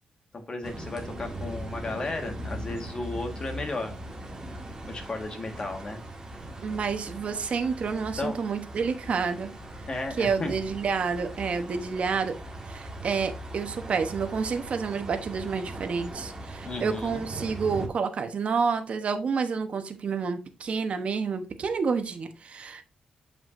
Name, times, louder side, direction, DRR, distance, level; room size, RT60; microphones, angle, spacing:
voice 1, 0.3-3.9 4.9-6.0 8.2-8.4 9.9-10.5 16.6-17.2, left 2 dB, 35° left, 1.6 m, -34 dB
sound 1, 0.6-17.9, right 1 dB, 20° right, 1.7 m, -40 dB
voice 2, 6.6-9.5 10.2-12.3 12.7-22.9, right 5 dB, 55° right, 1.0 m, -29 dB
7.5 x 5.8 x 2.6 m
cardioid pair, 120°, 3 cm